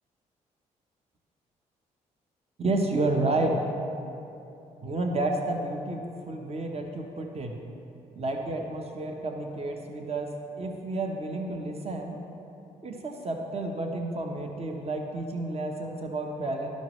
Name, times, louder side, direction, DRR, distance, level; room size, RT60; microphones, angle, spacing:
voice 1, 2.6-3.6 4.8-7.6 8.2-12.2 12.8-16.7, right 2 dB, 35° right, 2 dB, 1.0 m, -30 dB
12.5 x 5.3 x 3.2 m, 2.9 s
hypercardioid pair, 50°, 17 cm